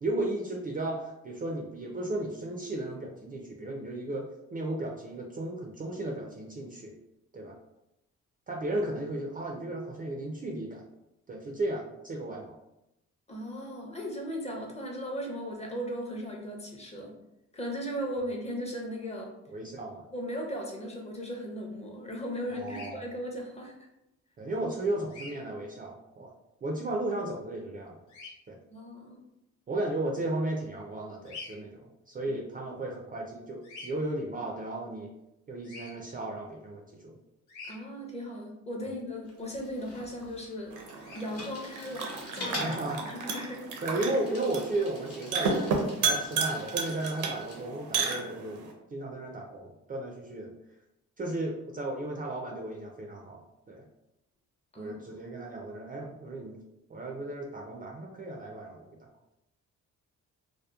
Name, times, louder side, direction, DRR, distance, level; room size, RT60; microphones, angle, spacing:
voice 1, 0.0-6.9 7.3-7.5 8.5-10.8 11.3-12.6 19.5-20.0 22.5-23.0 24.4-26.3 26.6-28.0 28.5-28.6 29.7-31.8 32.1-35.1 35.5-37.2 38.8-38.9 42.4-43.0 43.8-48.6 48.9-50.5 51.2-53.8 54.8-56.6 56.9-59.1, right 2 dB, 30° right, 0 dB, 0.4 m, -35 dB
voice 2, 13.3-17.2 17.5-19.3 20.1-23.7 28.7-29.2 37.7-40.8 41.1-43.7 54.7-54.9, equal, 20° left, 0 dB, 0.6 m, -37 dB
Bird vocalization bird call bird song, 22.7-22.9 25.1-25.3 28.1-28.3 31.2-31.6 33.6-33.9 35.6-35.9 37.5-37.8 41.0-41.3, left 3 dB, 85° left, 0.7 m, -44 dB
Bicycle, 39.3-47.7, left 1 dB, 50° left, 1.0 m, -45 dB
sound 1, 40.7-48.7, right 4 dB, 75° right, 0.6 m, -33 dB
2.8 x 2.0 x 2.3 m, 0.86 s
cardioid pair, 90°, 30 cm